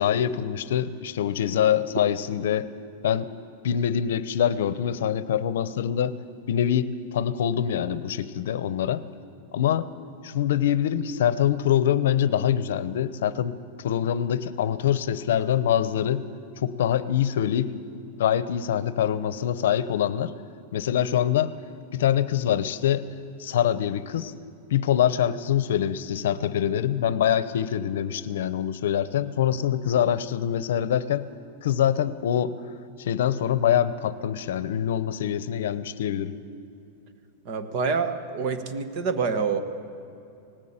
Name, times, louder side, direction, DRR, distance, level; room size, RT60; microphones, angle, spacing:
voice 1, 0.0-2.7 3.0-3.3 3.6-6.2 6.5-9.0 9.5-9.9 10.2-13.6 13.8-16.2 16.6-17.7 18.2-20.3 20.7-21.5 21.9-23.1 23.4-24.3 24.7-31.3 31.6-32.5 33.0-36.3, left 10 dB, 70° left, 15 dB, 0.8 m, -24 dB
voice 2, 37.4-39.6, right 5 dB, 35° right, 8 dB, 1.3 m, -27 dB
19.0 x 15.5 x 8.8 m, 2.7 s
supercardioid pair, 175°, 0 cm